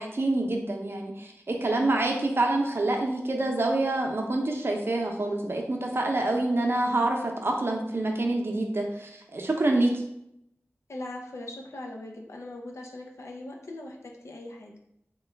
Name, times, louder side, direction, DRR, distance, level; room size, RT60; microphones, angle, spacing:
voice 1, 0.0-9.9, right 2 dB, 55° right, 2 dB, 0.6 m, -27 dB
voice 2, 10.9-14.7, left 2 dB, 80° left, 0 dB, 0.5 m, -40 dB
3.0 x 2.2 x 3.3 m, 0.77 s
wide cardioid pair, 50°, 5 cm